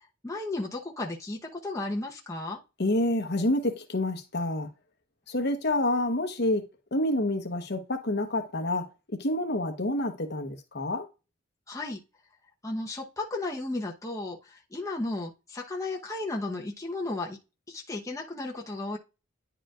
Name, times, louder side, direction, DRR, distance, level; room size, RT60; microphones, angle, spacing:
voice 1, 0.2-2.6 11.7-12.0 12.6-17.4 17.7-19.0, left 2 dB, 15° left, 1.0 m, -34 dB
voice 2, 2.8-4.7 5.3-11.1, left 1 dB, 50° left, 1.1 m, -28 dB
10.0 x 4.9 x 2.4 m
head